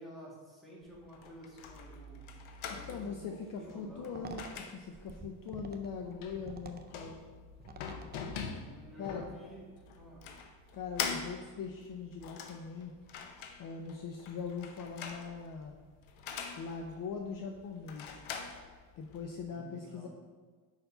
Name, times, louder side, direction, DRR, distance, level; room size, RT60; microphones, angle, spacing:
voice 1, 0.0-2.2 2.6-4.2 8.4-9.6 9.9-10.2 19.5-20.1, right 1 dB, ahead, -6 dB, 1.9 m, -51 dB
sound 1, 0.8-19.4, left 6 dB, 90° left, 0.9 m, -44 dB
voice 2, 2.7-7.2 9.0-9.3 10.7-12.9 13.6-15.8 16.6-18.2 19.0-20.1, left 5 dB, 45° left, 3 dB, 0.6 m, -41 dB
sound 2, 3.9-8.8, right 4 dB, 25° right, 0.3 m, -50 dB
5.2 x 4.6 x 5.5 m, 1.5 s
cardioid pair, 130°, 47 cm